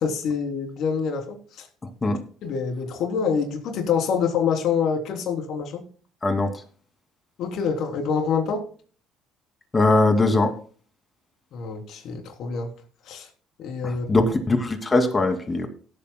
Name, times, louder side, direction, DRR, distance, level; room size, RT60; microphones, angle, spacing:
voice 1, 0.0-1.4 2.4-5.8 7.4-8.6 11.5-12.7 13.1-13.3 13.6-14.3, left 6 dB, 65° left, 3 dB, 3.3 m, -26 dB
voice 2, 6.2-6.5 9.7-10.5 13.8-15.7, left 2 dB, 25° left, 6 dB, 2.5 m, -21 dB
17.5 x 8.6 x 2.3 m, 0.41 s
supercardioid pair, 70°, 0 cm